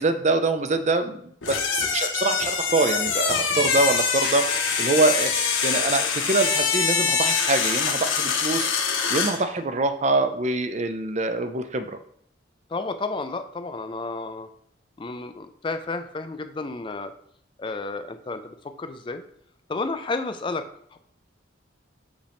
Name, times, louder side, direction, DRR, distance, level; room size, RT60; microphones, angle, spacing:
voice 1, 0.0-4.4 4.8-8.7 9.1-12.0, right 3 dB, 35° right, 8 dB, 0.5 m, -24 dB
sound 1, 1.4-9.4, left 6 dB, 85° left, 1.1 m, -24 dB
voice 2, 12.7-14.5 15.0-17.1 17.6-19.2 19.7-20.6 20.9-21.0, left 3 dB, 25° left, 9 dB, 0.4 m, -31 dB
6.2 x 5.0 x 3.5 m, 0.66 s
head